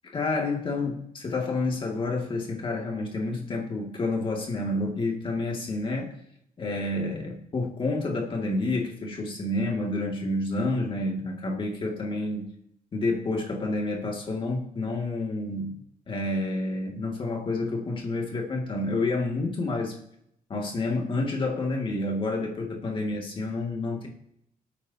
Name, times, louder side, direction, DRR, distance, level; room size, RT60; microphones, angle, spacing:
voice 1, 0.1-6.1 6.6-12.5 12.9-15.8 16.1-20.0 20.5-24.1, left 2 dB, 35° left, 0 dB, 2.3 m, -29 dB
19.0 x 8.8 x 2.9 m, 0.74 s
wide cardioid pair, 170°, 15 cm